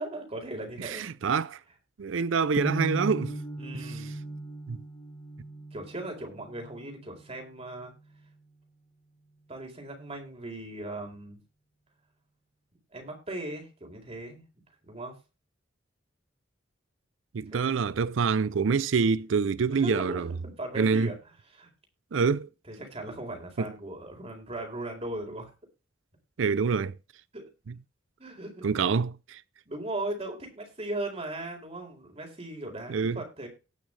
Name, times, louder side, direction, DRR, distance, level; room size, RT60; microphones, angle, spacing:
voice 1, 0.0-1.3 3.6-4.1 5.7-7.9 9.5-11.4 12.9-14.5 14.8-15.1 17.5-17.7 19.7-21.2 21.5-21.7 22.7-25.5 27.3-27.5 28.2-28.7 29.7-33.5, right 1 dB, 35° right, 4.2 m, -38 dB
voice 2, 0.8-1.6 2.0-3.4 4.7-4.8 17.3-20.3 20.8-21.1 22.1-22.5 26.4-26.9 28.6-29.4 32.9-33.2, right 5 dB, 80° right, 0.5 m, -26 dB
sound 1, 2.6-8.6, right 1 dB, 20° left, 1.3 m, -38 dB
18.5 x 6.4 x 3.3 m
head